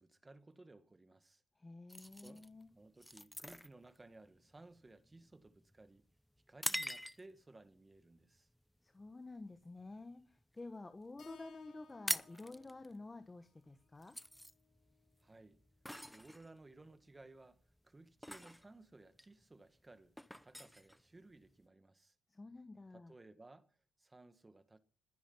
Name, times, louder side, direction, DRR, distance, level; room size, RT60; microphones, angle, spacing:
voice 1, 0.0-1.4 2.2-2.5 2.7-6.1 6.5-8.5 15.2-15.6 16.1-20.2 20.4-22.2 22.9-24.8, right 2 dB, 20° right, 1.7 m, -59 dB
voice 2, 1.6-2.7 8.8-14.1 22.3-23.1, left 2 dB, 20° left, 1.5 m, -51 dB
sound 1, 1.9-7.5 8.0-8.3 8.8-9.1 9.4-10.6 10.9-11.0 11.2-11.4 11.7-21.7, equal, ahead, 0.7 m, -45 dB
Keyboard (musical), 11.2-15.4, left 6 dB, 60° left, 5.7 m, -64 dB
21.0 x 10.0 x 5.6 m
cardioid pair, 90°, 0 cm